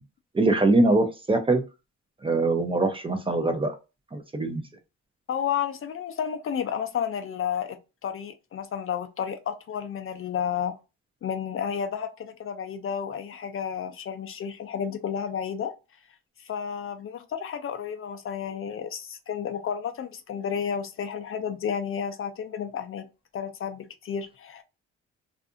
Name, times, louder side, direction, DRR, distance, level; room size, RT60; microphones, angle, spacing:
voice 1, 0.3-1.6 2.2-3.7 4.1-4.6, right 2 dB, 20° right, 0.5 m, -23 dB
voice 2, 5.3-10.7 11.2-15.7 16.4-23.1 23.3-24.6, left 8 dB, 45° left, 0.4 m, -31 dB
2.6 x 2.5 x 2.4 m
cardioid pair, 90°, 30 cm